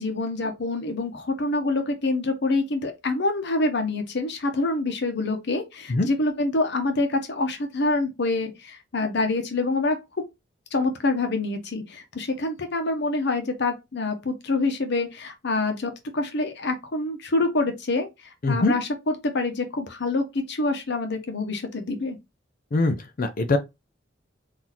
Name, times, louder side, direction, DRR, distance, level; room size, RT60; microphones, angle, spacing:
voice 1, 0.0-10.0 10.7-22.2, left 2 dB, 65° left, 0.9 m, -26 dB
voice 2, 18.4-18.7 22.7-23.6, left 2 dB, 45° left, 0.5 m, -22 dB
3.9 x 2.7 x 2.9 m
head